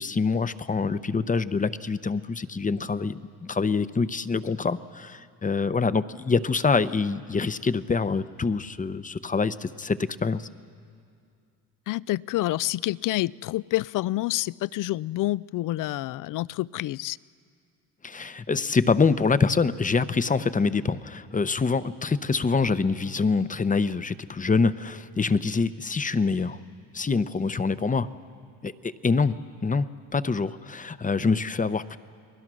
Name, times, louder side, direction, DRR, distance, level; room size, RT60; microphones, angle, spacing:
voice 1, 0.0-10.5 18.0-26.6 26.9-28.1 28.6-29.4 29.6-32.0, left 4 dB, 20° left, 0.8 m, -25 dB
voice 2, 11.9-17.2, left 17 dB, 60° left, 0.5 m, -28 dB
29.0 x 20.5 x 6.3 m
supercardioid pair, 80°, 37 cm